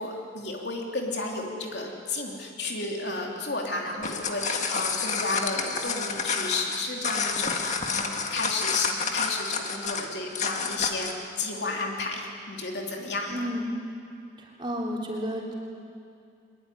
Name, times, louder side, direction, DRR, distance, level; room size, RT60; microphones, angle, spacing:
voice 1, 0.0-11.1 11.4-13.5, left 3 dB, 65° left, 0 dB, 3.0 m, -32 dB
sound 1, 3.9-11.2, left 5 dB, 40° left, 1.9 m, -29 dB
voice 2, 13.3-13.7 14.4-15.5, equal, 25° right, -2 dB, 3.8 m, -32 dB
23.5 x 22.0 x 9.9 m, 2.5 s
head